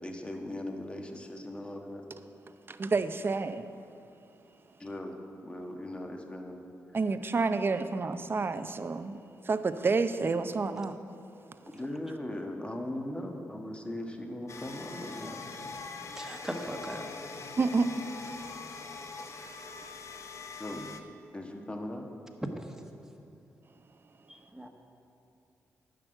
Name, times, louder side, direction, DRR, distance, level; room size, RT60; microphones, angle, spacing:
voice 1, 0.0-2.0 4.8-6.6 11.7-15.4 20.6-20.9 21.3-22.1, left 1 dB, 20° left, 3 dB, 1.4 m, -39 dB
voice 2, 2.7-3.7 6.9-9.2 9.4-11.0 17.6-17.9, right 4 dB, 40° right, 11 dB, 0.6 m, -29 dB
sound 1, 14.5-21.0, left 4 dB, 60° left, 0.8 m, -43 dB
voice 3, 16.1-17.1 24.3-24.7, equal, 10° right, 3 dB, 1.4 m, -39 dB
10.5 x 6.3 x 7.9 m, 2.6 s
cardioid pair, 60°, 6 cm